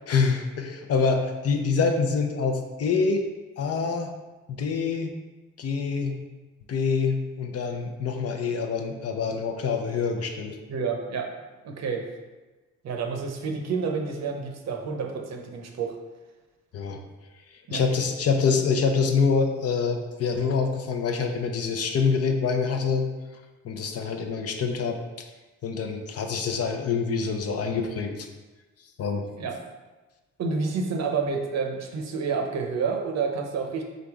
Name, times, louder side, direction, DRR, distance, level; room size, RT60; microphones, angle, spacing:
voice 1, 0.1-3.3 3.6-4.1 4.5-5.2 5.6-6.2 6.7-10.6 16.7-17.0 17.7-23.1 23.6-25.0 25.6-28.3 29.0-29.3, left 5 dB, 55° left, 4 dB, 0.6 m, -26 dB
voice 2, 10.7-11.3 11.6-12.0 12.8-16.0 17.7-17.8 29.4-29.6 30.4-33.8, right 5 dB, 60° right, 3 dB, 0.7 m, -29 dB
3.9 x 3.5 x 3.5 m, 1.2 s
cardioid pair, 90°, 30 cm